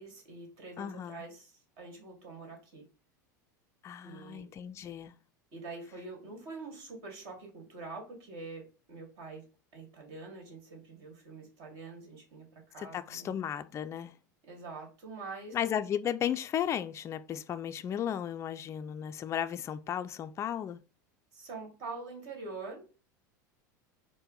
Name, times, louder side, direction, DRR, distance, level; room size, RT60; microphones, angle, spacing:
voice 1, 0.0-2.9 4.0-4.5 5.5-9.5 9.7-13.3 14.4-15.5 21.3-22.9, right 3 dB, 60° right, 1.9 m, -45 dB
voice 2, 0.8-1.2 3.8-5.1 12.8-14.1 15.5-20.8, left 9 dB, 30° left, 0.3 m, -35 dB
4.2 x 2.1 x 3.9 m
hypercardioid pair, 95°, 10 cm